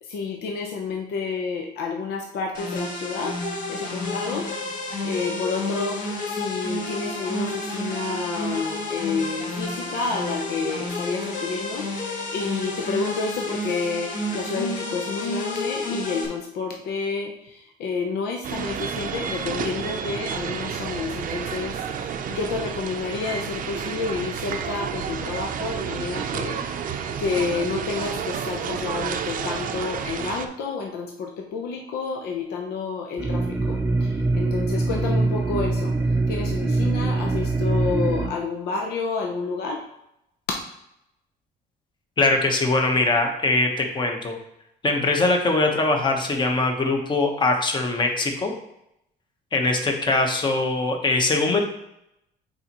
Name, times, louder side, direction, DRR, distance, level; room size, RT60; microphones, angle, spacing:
voice 1, 0.0-3.4 3.7-4.5 4.7-6.0 6.3-35.9 36.3-39.8, left 4 dB, 75° left, 1 dB, 0.8 m, -30 dB
sound 1, 2.5-16.3, left 1 dB, 50° left, 1.4 m, -30 dB
sound 2, 18.4-30.5, right 7 dB, 55° right, 0.6 m, -30 dB
sound 3, 33.2-38.3, right 2 dB, 10° right, 0.7 m, -23 dB
voice 2, 42.2-44.4 44.8-48.5 49.5-51.6, left 2 dB, 25° left, 3 dB, 1.1 m, -22 dB
8.8 x 4.0 x 3.0 m, 0.80 s
cardioid pair, 110°, 17 cm